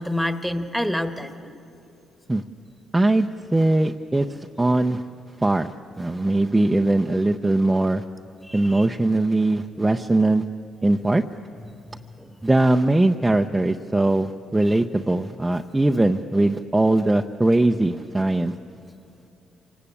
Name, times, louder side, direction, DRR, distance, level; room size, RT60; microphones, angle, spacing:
voice 1, 0.0-1.5 8.4-8.9 11.9-12.3 14.7-14.8, left 1 dB, 5° left, 8 dB, 1.3 m, -28 dB
voice 2, 2.9-4.3 4.6-5.0 5.4-8.0 8.5-10.4 10.8-11.2 12.4-18.5, right 2 dB, 15° right, 4 dB, 0.6 m, -20 dB
26.0 x 18.5 x 8.6 m, 2.7 s
cardioid pair, 90°, 0 cm